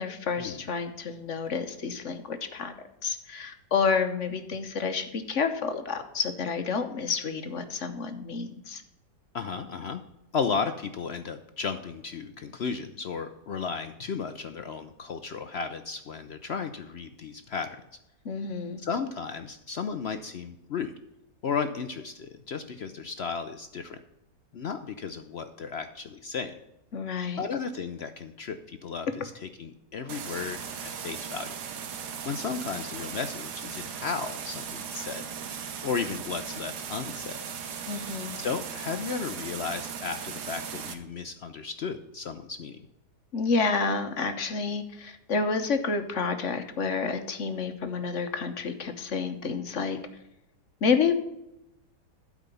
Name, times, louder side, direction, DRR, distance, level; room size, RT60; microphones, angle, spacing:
voice 1, 0.0-2.7 3.0-8.8 18.2-18.8 26.9-27.4 37.9-38.4 43.3-50.0 50.8-51.1, left 5 dB, 50° left, 8 dB, 1.1 m, -29 dB
voice 2, 9.3-10.0 10.3-17.8 18.8-20.9 21.4-24.0 24.5-26.5 27.4-31.5 32.2-35.2 35.8-37.4 38.3-42.8, left 5 dB, 70° left, 9 dB, 0.6 m, -34 dB
sound 1, 30.1-40.9, right 7 dB, 70° right, 1.5 m, -38 dB
12.0 x 4.9 x 6.9 m, 0.89 s
omnidirectional pair, 1.9 m